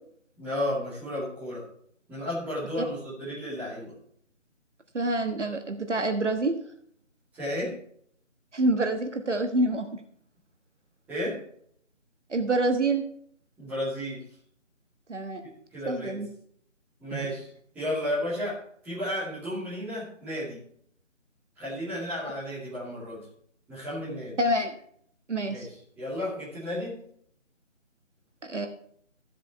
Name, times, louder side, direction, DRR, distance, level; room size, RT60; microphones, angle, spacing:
voice 1, 0.4-1.6 2.1-3.9 7.3-7.7 11.1-11.4 13.6-14.2 15.7-16.2 17.0-17.5 17.7-20.6 21.6-23.2 23.7-24.4 25.5-27.0, left 1 dB, 5° right, -10 dB, 2.5 m, -33 dB
voice 2, 4.9-6.5 8.5-10.0 12.3-13.0 15.1-15.4 15.8-16.3 17.1-17.3 24.4-24.7 25.3-25.7 28.4-28.7, right 2 dB, 65° right, 6 dB, 1.4 m, -27 dB
13.5 x 7.4 x 4.4 m, 0.64 s
figure-of-eight pair, 160°, 38 cm